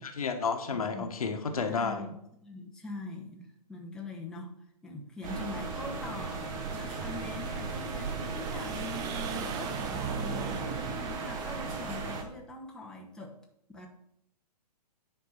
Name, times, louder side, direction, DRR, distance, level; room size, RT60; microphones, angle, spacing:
voice 1, 0.0-2.0, left 5 dB, 60° left, 5 dB, 1.4 m, -31 dB
voice 2, 0.7-1.1 1.7-4.5 4.8-13.3 13.7-13.9, left 2 dB, 5° left, -1 dB, 1.2 m, -43 dB
sound 1, 5.2-12.2, right 7 dB, 20° right, 0.6 m, -39 dB
sound 2, 5.2-12.2, right 3 dB, 50° right, 3.6 m, -38 dB
9.7 x 4.6 x 5.9 m, 0.79 s
figure-of-eight pair, 120°, 21 cm